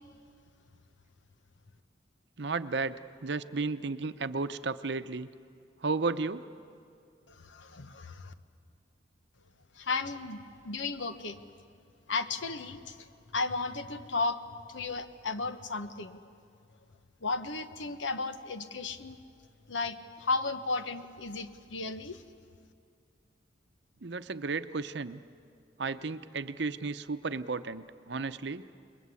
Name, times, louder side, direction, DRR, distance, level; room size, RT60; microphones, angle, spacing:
voice 1, 2.4-5.3 5.8-6.4 24.0-25.2 25.8-28.6, right 4 dB, 65° right, 12 dB, 0.7 m, -33 dB
voice 2, 7.3-8.3 9.7-11.4 12.1-16.2 17.2-19.2 19.7-22.2, left 3 dB, 85° left, 10 dB, 1.2 m, -34 dB
28.5 x 21.0 x 8.4 m, 2.4 s
head